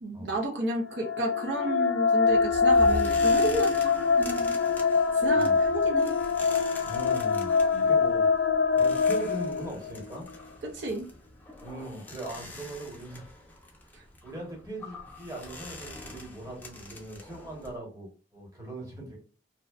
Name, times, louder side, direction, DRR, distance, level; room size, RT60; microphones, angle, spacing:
voice 1, 0.0-4.5 5.1-6.2 7.7-7.9 10.6-11.1 13.9-14.0, right 1 dB, 80° right, 1 dB, 0.6 m, -32 dB
sound 1, 0.8-10.0, left 4 dB, 75° left, 0.3 m, -24 dB
sound 2, 2.3-17.8, left 1 dB, 10° left, 0.5 m, -43 dB
voice 2, 6.8-8.3 8.8-10.3 11.6-13.3 13.8-19.2, right 1 dB, 20° right, -2 dB, 1.1 m, -40 dB
2.6 x 2.1 x 2.3 m, 0.38 s
head